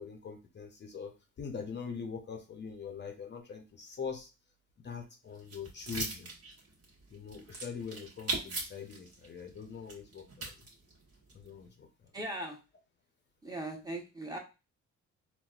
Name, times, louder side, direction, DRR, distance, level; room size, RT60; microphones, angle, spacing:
voice 1, 0.0-4.3 4.8-6.3 7.1-10.5 11.3-11.9, left 6 dB, 35° left, 3 dB, 0.6 m, -43 dB
sound 1, 5.3-11.5, right 3 dB, 50° right, 1.3 m, -40 dB
voice 2, 12.1-12.6 13.4-14.4, right 1 dB, 15° right, 2 dB, 0.8 m, -39 dB
4.0 x 2.1 x 2.3 m, 0.29 s
cardioid pair, 90°, 30 cm